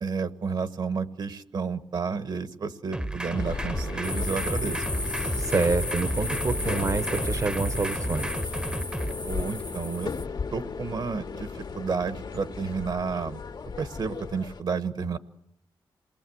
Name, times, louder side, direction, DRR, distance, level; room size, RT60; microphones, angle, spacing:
voice 1, 0.0-4.8 9.2-10.1 10.5-13.4 13.8-15.2, right 5 dB, 65° right, 11 dB, 1.3 m, -31 dB
sound 1, 2.9-9.1, right 1 dB, 10° right, 0.9 m, -32 dB
sound 2, 3.3-14.6, left 5 dB, 75° left, 2.1 m, -36 dB
sound 3, 4.0-10.2, left 2 dB, 15° left, 0.9 m, -34 dB
voice 2, 5.4-8.3, right 4 dB, 40° right, 12 dB, 1.0 m, -27 dB
27.5 x 20.0 x 7.9 m, 0.76 s
wide cardioid pair, 115°, 8 cm